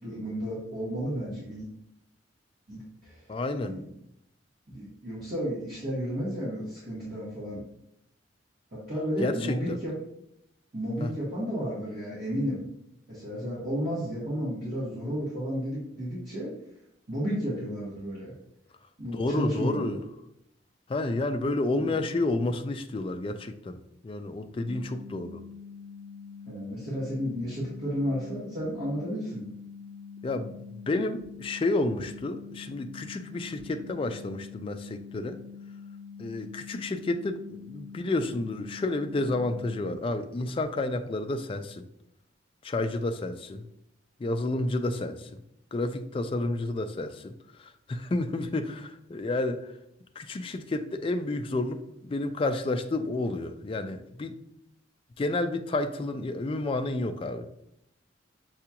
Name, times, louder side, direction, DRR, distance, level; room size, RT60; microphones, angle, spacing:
voice 1, 0.0-1.7 2.7-3.3 3.6-3.8 4.7-7.6 8.7-9.9 10.7-12.6 13.1-16.5 17.1-18.3 19.0-20.0 21.7-21.9 26.5-29.4, equal, 50° right, -10 dB, 1.5 m, -32 dB
voice 2, 3.3-3.8 9.2-9.8 11.0-11.1 19.1-20.0 20.9-25.4 30.2-35.4 36.2-41.9 42.6-43.6 44.2-45.4 45.7-49.7 50.2-54.4 55.2-57.5, left 2 dB, 30° left, 7 dB, 0.3 m, -30 dB
sound 1, 24.7-39.9, left 5 dB, 70° right, 1.6 m, -45 dB
6.7 x 2.4 x 2.8 m, 0.77 s
head